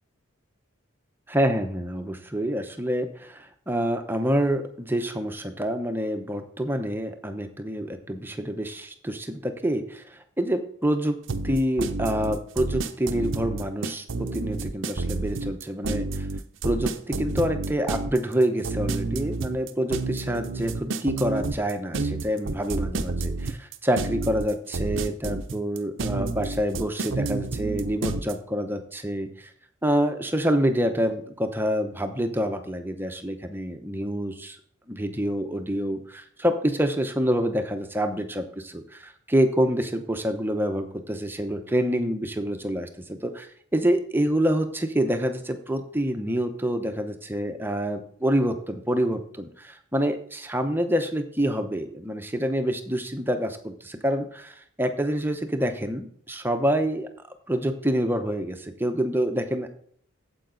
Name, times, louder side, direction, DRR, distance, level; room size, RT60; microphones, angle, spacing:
voice 1, 1.3-11.2 11.4-16.3 16.6-29.5 29.8-34.6 34.9-57.1 57.5-59.7, equal, 10° right, 6 dB, 0.8 m, -27 dB
sound 1, 11.3-28.3, right 3 dB, 65° right, 0.7 m, -29 dB
9.1 x 7.8 x 3.9 m, 0.62 s
head